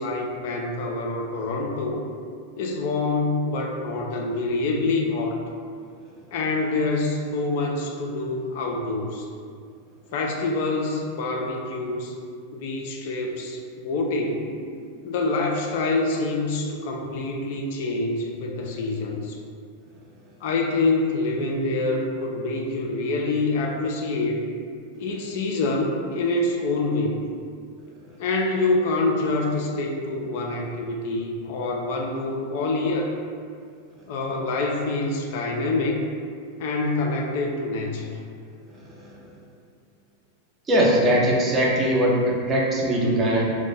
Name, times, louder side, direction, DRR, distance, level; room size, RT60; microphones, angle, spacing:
voice 1, 0.0-2.0 2.6-5.4 6.3-9.3 10.1-12.2 12.5-14.6 15.0-19.4 20.4-24.5 25.0-27.2 28.2-33.1 34.1-36.1 36.6-38.2, left 2 dB, 50° left, 1 dB, 0.3 m, -26 dB
voice 2, 40.7-43.5, equal, 20° right, -4 dB, 0.6 m, -20 dB
2.4 x 2.1 x 3.9 m, 2.2 s
figure-of-eight pair, 90°, 0 cm